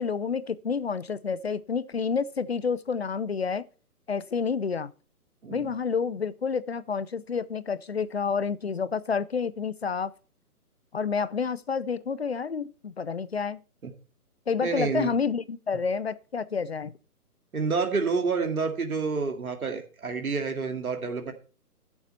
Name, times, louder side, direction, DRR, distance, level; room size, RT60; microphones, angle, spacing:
voice 1, 0.0-3.6 4.1-4.9 5.5-10.1 10.9-13.6 14.5-16.9, left 5 dB, 45° left, 0.6 m, -29 dB
voice 2, 14.6-15.1 17.5-21.3, right 4 dB, 65° right, 2.3 m, -28 dB
14.0 x 7.2 x 4.4 m
figure-of-eight pair, 140°, 46 cm